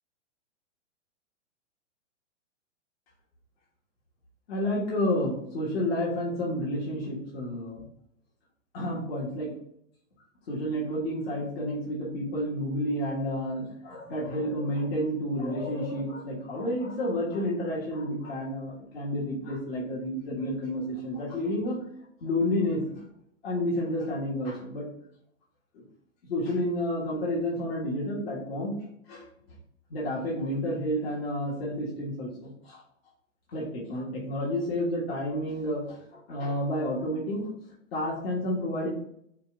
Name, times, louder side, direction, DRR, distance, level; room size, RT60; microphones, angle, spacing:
voice 1, 4.5-7.8 8.7-9.5 10.5-21.8 22.2-23.0 23.4-24.9 26.2-28.7 29.1-29.2 29.9-32.8 33.5-37.5 37.9-38.9, left 1 dB, 50° left, -5 dB, 1.5 m, -30 dB
5.6 x 2.4 x 3.7 m, 0.72 s
hypercardioid pair, 160°, 38 cm